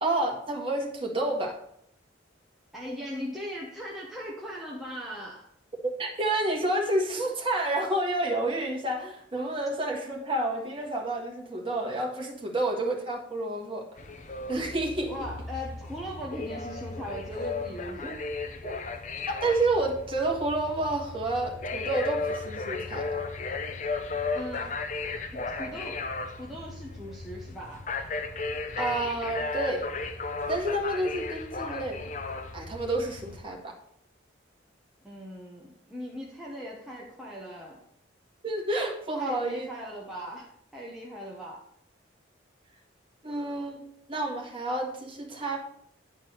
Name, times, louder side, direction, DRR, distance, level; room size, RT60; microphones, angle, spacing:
voice 1, 0.0-1.6 6.0-14.0 14.5-15.1 19.3-23.2 28.8-29.9 30.5-32.1 32.5-33.7 38.4-39.7 43.2-45.6, right 2 dB, 30° right, -1 dB, 1.8 m, -29 dB
voice 2, 2.7-5.4 15.1-18.2 18.6-18.8 24.3-24.7 25.3-26.1 26.4-27.9 35.0-37.8 39.1-41.6, equal, ahead, -4 dB, 1.1 m, -39 dB
sound 1, 14.0-33.4, left 3 dB, 40° left, 0.7 m, -35 dB
9.4 x 4.5 x 6.5 m, 0.69 s
head